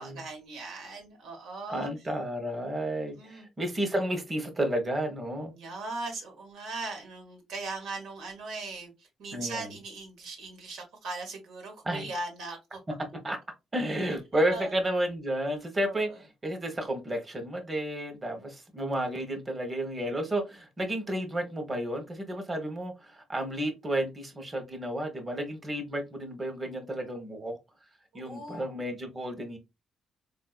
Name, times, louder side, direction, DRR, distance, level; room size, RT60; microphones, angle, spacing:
voice 1, 0.0-1.9 3.1-3.5 5.5-12.8 14.5-14.7 15.8-16.2 28.1-28.8, right 3 dB, 85° right, 1.4 m, -39 dB
voice 2, 1.7-5.5 9.3-9.7 11.8-12.0 13.2-13.4 13.7-16.1 16.4-27.6 28.1-29.6, right 1 dB, 25° right, 1.0 m, -32 dB
3.9 x 2.6 x 2.4 m
cardioid pair, 90°, 0 cm